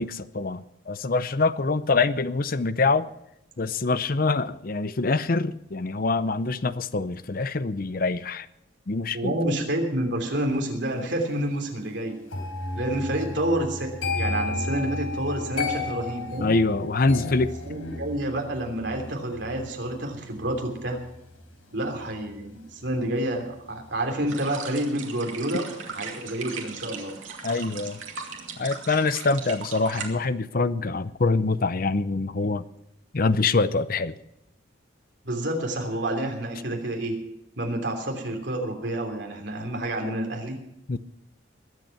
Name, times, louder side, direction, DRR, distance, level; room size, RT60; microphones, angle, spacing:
voice 1, 0.0-3.1 3.6-8.5 8.9-9.3 16.4-17.5 27.4-28.0 28.6-32.6 33.1-34.1 40.9-41.0, left 3 dB, 45° left, 14 dB, 0.6 m, -25 dB
voice 2, 9.1-12.2 12.7-16.5 17.6-21.0 21.7-27.1 35.2-37.2 37.6-40.6, right 1 dB, 60° right, 2 dB, 3.2 m, -29 dB
sound 1, 12.3-23.3 23.6-23.9, left 3 dB, 90° left, 4.0 m, -34 dB
sound 2, 24.3-30.1, right 6 dB, 75° right, 2.5 m, -38 dB
21.5 x 8.2 x 5.8 m, 0.84 s
head